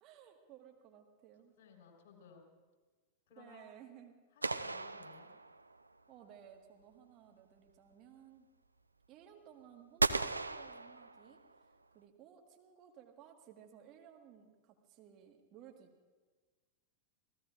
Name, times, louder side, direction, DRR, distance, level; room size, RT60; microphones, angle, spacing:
voice 1, 0.0-1.5 3.4-4.2 6.1-8.5 9.1-11.4 11.9-15.9, right 9 dB, 35° right, 2 dB, 1.6 m, -58 dB
voice 2, 1.6-2.4 3.3-3.6 4.3-5.3, left 6 dB, 55° left, 2 dB, 4.1 m, -59 dB
sound 1, 4.4-5.9 10.0-11.6, right 3 dB, 80° right, 0.4 m, -36 dB
28.5 x 17.0 x 2.5 m, 1.3 s
figure-of-eight pair, 90°, 0 cm